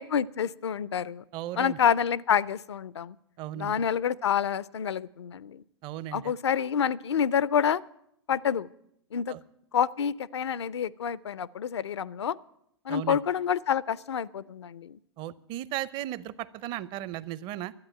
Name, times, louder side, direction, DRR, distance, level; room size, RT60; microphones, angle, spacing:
voice 1, 0.0-1.2 1.6-3.2 3.5-5.6 6.1-7.8 8.3-8.7 9.1-9.4 9.7-12.4 12.9-15.0, left 8 dB, 75° left, 20 dB, 0.5 m, -28 dB
voice 2, 1.3-1.8 3.4-3.8 5.8-6.3 9.3-9.4 12.9-13.2 15.2-17.7, right 13 dB, 35° right, 18 dB, 0.6 m, -36 dB
13.0 x 8.7 x 9.9 m, 0.74 s
hypercardioid pair, 110°, 14 cm